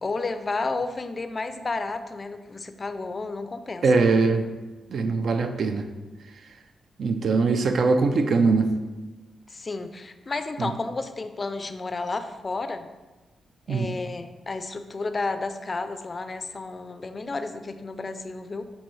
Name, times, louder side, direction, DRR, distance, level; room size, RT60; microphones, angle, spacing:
voice 1, 0.0-4.0 9.5-12.9 13.7-18.6, left 3 dB, 40° left, 10 dB, 0.3 m, -32 dB
voice 2, 3.8-4.4 4.9-5.9 7.0-8.7 10.6-10.7 13.7-13.9, right 4 dB, 70° right, 7 dB, 0.3 m, -21 dB
5.4 x 2.6 x 3.0 m, 1.2 s
cardioid pair, 60°, 0 cm